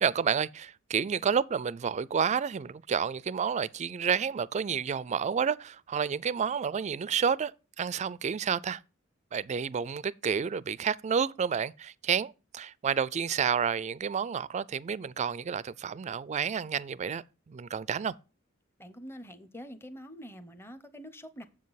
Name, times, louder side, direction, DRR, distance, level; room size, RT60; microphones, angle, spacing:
voice 1, 0.0-8.8 9.3-18.1, right 7 dB, 35° right, 0.3 m, -30 dB
voice 2, 18.8-21.5, equal, 10° left, 0.7 m, -45 dB
7.4 x 7.3 x 4.0 m
head